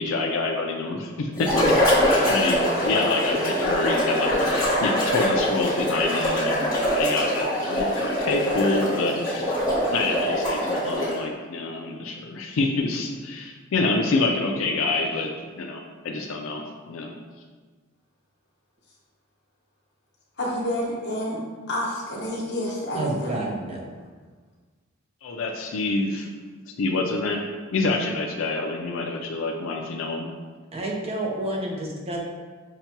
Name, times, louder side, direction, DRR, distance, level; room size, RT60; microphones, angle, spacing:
voice 1, 0.0-1.7 2.3-9.5 9.9-15.3 15.6-17.1 25.2-26.3 26.8-27.4 27.7-30.3, left 3 dB, 65° left, 2 dB, 0.4 m, -27 dB
sound 1, 1.4-11.2, equal, 15° left, 1.0 m, -23 dB
voice 2, 20.4-21.4 21.7-23.4, equal, 50° left, -4 dB, 0.9 m, -29 dB
voice 3, 22.9-24.0 30.7-32.2, right 1 dB, 30° right, -2 dB, 0.5 m, -29 dB
5.7 x 2.2 x 2.8 m, 1.4 s
head